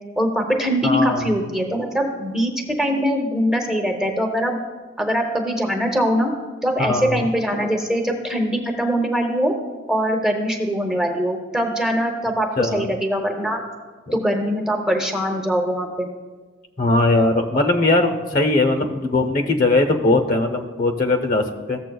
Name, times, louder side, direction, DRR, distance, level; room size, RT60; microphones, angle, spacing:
voice 1, 0.2-4.6 5.0-6.3 6.6-9.5 9.9-13.6 14.1-16.1, equal, 5° right, 2 dB, 0.7 m, -22 dB
voice 2, 0.8-1.2 6.8-7.3 12.6-12.8 14.1-14.2 16.8-21.8, left 2 dB, 45° left, 5 dB, 0.7 m, -20 dB
15.0 x 7.2 x 2.3 m, 1.3 s
head